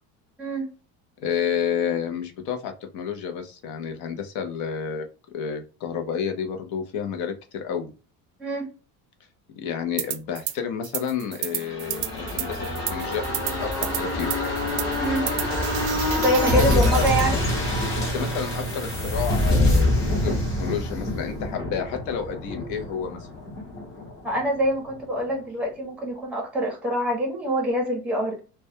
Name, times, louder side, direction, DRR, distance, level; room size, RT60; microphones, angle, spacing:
voice 1, 1.2-7.9 9.6-13.3 13.6-14.3 16.5-17.1 17.9-23.3, left 7 dB, 55° left, 5 dB, 0.6 m, -30 dB
voice 2, 8.4-8.7 15.0-15.3 16.1-17.4 24.2-28.4, right 1 dB, 5° right, -1 dB, 0.7 m, -25 dB
sound 1, 10.0-10.6 10.8-17.3, right 13 dB, 70° right, 0.5 m, -32 dB
sound 2, 11.5-25.0 25.3-25.4, left 1 dB, 30° left, 1.0 m, -26 dB
2.2 x 2.2 x 2.7 m, 0.33 s
cardioid pair, 175°, 36 cm